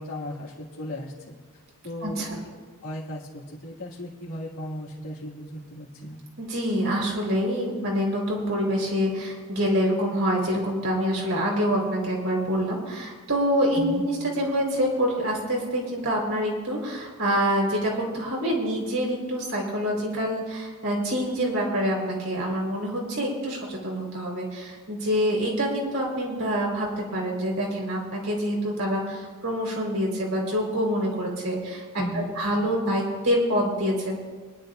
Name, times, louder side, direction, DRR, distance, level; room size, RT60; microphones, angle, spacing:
voice 1, 0.0-1.3 1.8-2.5 2.8-6.2 13.7-14.0 32.0-32.3, equal, 75° left, -9 dB, 2.2 m, -36 dB
voice 2, 2.0-2.4 6.4-31.8 32.1-34.2, equal, 65° right, -1 dB, 4.0 m, -26 dB
24.0 x 11.5 x 2.5 m, 1.4 s
head